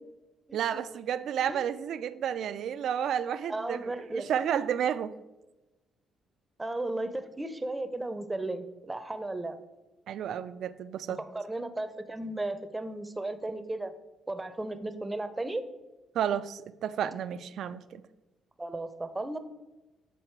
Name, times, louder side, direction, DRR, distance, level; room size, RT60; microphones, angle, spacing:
voice 1, 0.5-5.1 10.1-11.2 16.1-18.0, right 9 dB, 70° right, 0.3 m, -31 dB
voice 2, 3.5-4.3 6.6-9.6 11.2-13.9 14.3-15.6 18.6-19.4, right 2 dB, 15° right, 0.6 m, -35 dB
8.1 x 3.9 x 4.5 m
cardioid pair, 90°, 0 cm